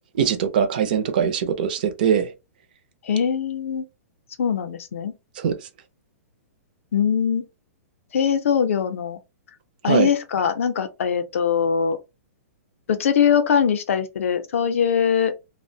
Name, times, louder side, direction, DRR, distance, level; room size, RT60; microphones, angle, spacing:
voice 1, 0.2-2.3 5.4-5.5 9.9-10.1, right 7 dB, 35° right, 0.4 m, -21 dB
voice 2, 3.0-3.8 4.4-5.1 6.9-7.4 8.1-9.2 9.8-12.0 12.9-15.5, left 7 dB, 60° left, 0.5 m, -22 dB
2.5 x 2.0 x 2.6 m
hypercardioid pair, 175°, 8 cm